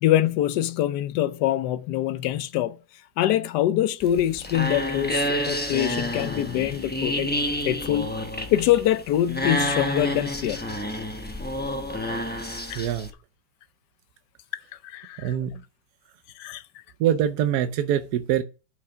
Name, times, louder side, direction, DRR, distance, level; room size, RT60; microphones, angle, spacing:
voice 1, 0.0-2.8 3.2-7.3 7.6-8.1 8.5-10.6 12.7-12.8 14.9-15.3 16.4-16.6, left 12 dB, 70° left, 1.2 m, -24 dB
sound 1, 4.0-13.1, left 1 dB, 15° left, 0.4 m, -29 dB
voice 2, 12.7-13.1 15.2-15.6 17.0-18.4, right 10 dB, 70° right, 1.0 m, -24 dB
8.6 x 5.0 x 5.6 m
omnidirectional pair, 2.0 m